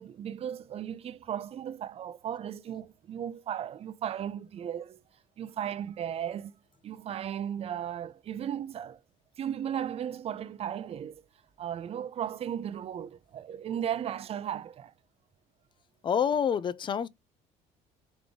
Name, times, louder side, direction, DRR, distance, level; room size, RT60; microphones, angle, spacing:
voice 1, 0.0-5.0 5.4-6.6 6.8-9.0 9.4-11.2 11.6-14.9, right 9 dB, 40° right, 0.4 m, -36 dB
voice 2, 16.0-17.1, left 7 dB, 30° left, 0.4 m, -27 dB
3.9 x 3.5 x 3.3 m
cardioid pair, 110°, 16 cm